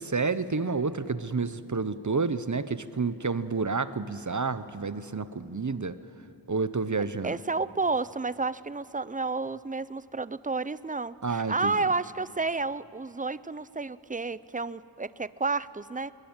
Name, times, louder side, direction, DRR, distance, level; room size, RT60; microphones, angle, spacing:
voice 1, 0.0-6.0 6.5-7.4 11.2-11.7, right 4 dB, 45° right, 14 dB, 0.9 m, -29 dB
voice 2, 7.0-16.1, right 3 dB, 20° right, 17 dB, 0.5 m, -31 dB
22.5 x 20.0 x 8.9 m, 2.8 s
wide cardioid pair, 40°, 42 cm